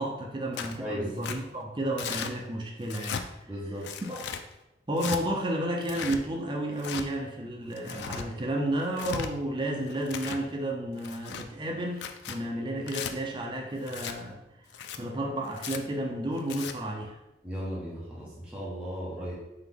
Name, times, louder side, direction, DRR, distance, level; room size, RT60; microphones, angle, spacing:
voice 1, 0.0-3.3 3.7-4.3 4.9-14.4 15.0-17.2, right 1 dB, 25° right, 0 dB, 0.5 m, -32 dB
Tearing, 0.5-0.8 1.2-1.4 2.0-2.3 2.8-3.2 3.8-4.4 5.0-5.2 5.8-6.2 6.8-7.1 7.7-8.3 8.8-9.3 9.9-10.4 11.0-11.5 11.9-12.4 12.9-13.1 13.9-14.2 14.7-15.0 15.6-15.8 16.4-16.7, left 7 dB, 75° left, 0.3 m, -36 dB
voice 2, 0.8-1.1 3.5-3.9 17.4-19.3, equal, 5° right, -7 dB, 0.8 m, -36 dB
3.9 x 2.9 x 3.4 m, 0.92 s
head